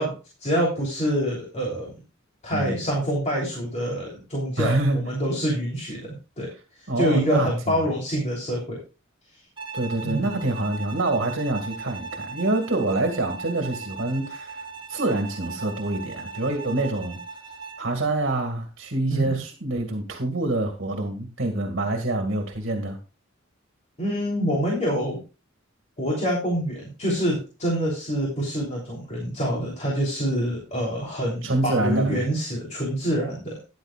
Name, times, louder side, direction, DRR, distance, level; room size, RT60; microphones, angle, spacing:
voice 1, 0.0-1.9 2.4-6.5 6.8-8.8 10.0-10.3 19.1-19.3 24.0-25.2 26.0-33.6, equal, 35° left, -3 dB, 3.3 m, -26 dB
voice 2, 4.6-5.0 6.9-7.8 9.7-14.6 14.9-17.2 17.8-23.0 31.4-32.2, right 2 dB, 60° right, 4 dB, 2.0 m, -26 dB
Bowed string instrument, 9.6-17.9, right 4 dB, 25° right, 2.6 m, -38 dB
13.5 x 10.5 x 2.4 m, 0.31 s
head